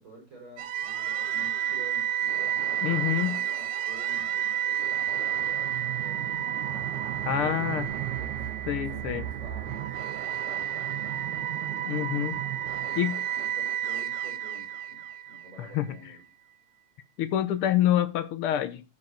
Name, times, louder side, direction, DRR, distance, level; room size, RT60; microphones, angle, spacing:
voice 1, 0.0-2.8 3.2-6.9 7.2-7.9 8.2-9.9 10.2-11.3 12.0-12.3 12.6-13.0 13.4-16.2, right 2 dB, 40° right, 5.9 m, -50 dB
sound 1, 0.6-15.7, right 10 dB, 85° right, 2.3 m, -31 dB
voice 2, 2.8-3.4 7.2-7.9 8.7-9.3 11.9-12.3 13.0-13.2 15.6-15.9 17.2-18.8, left 12 dB, 70° left, 1.3 m, -27 dB
14.0 x 6.5 x 4.3 m
omnidirectional pair, 3.4 m